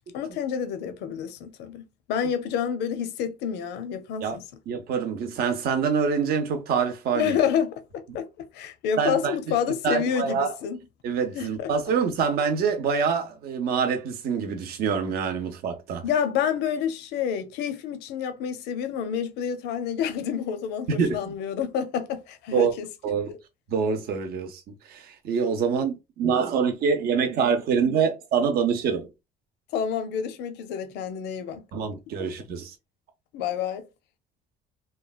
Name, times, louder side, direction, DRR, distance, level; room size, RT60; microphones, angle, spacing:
voice 1, 0.1-1.8 2.1-4.4 7.1-8.3 8.5-10.8 11.3-11.7 16.0-22.8 23.3-23.4 29.7-31.6 33.3-33.8, left 8 dB, 85° left, 0.5 m, -28 dB
voice 2, 4.7-7.4 9.0-9.5 9.8-10.5 11.0-16.1 20.9-21.3 22.5-22.7 23.0-23.3 23.7-24.6 24.9-29.1 31.7-32.7, right 6 dB, 65° right, 0.6 m, -25 dB
3.1 x 2.2 x 2.3 m
cardioid pair, 110°, 17 cm